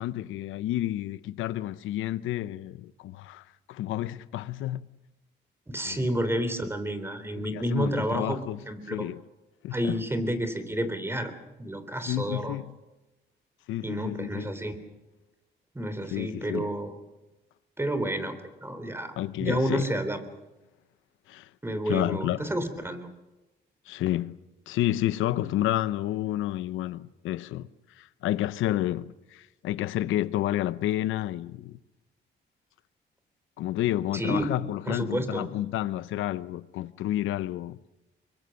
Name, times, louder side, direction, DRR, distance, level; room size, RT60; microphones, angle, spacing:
voice 1, 0.0-4.9 5.8-6.1 7.3-8.6 8.9-9.2 9.6-10.0 12.1-12.8 13.7-14.5 16.1-16.7 19.2-19.8 21.3-21.5 21.9-22.4 23.9-24.4 24.7-27.7 28.0-31.8 33.6-37.8, left 14 dB, 90° left, 0.8 m, -30 dB
voice 2, 5.7-9.1 9.7-11.3 11.6-12.6 13.8-14.8 15.8-16.9 17.8-18.4 18.6-19.1 19.4-20.2 21.6-23.1 34.1-34.5 34.9-35.5, right 1 dB, 10° right, 3.5 m, -30 dB
24.5 x 22.5 x 6.5 m
cardioid pair, 90°, 20 cm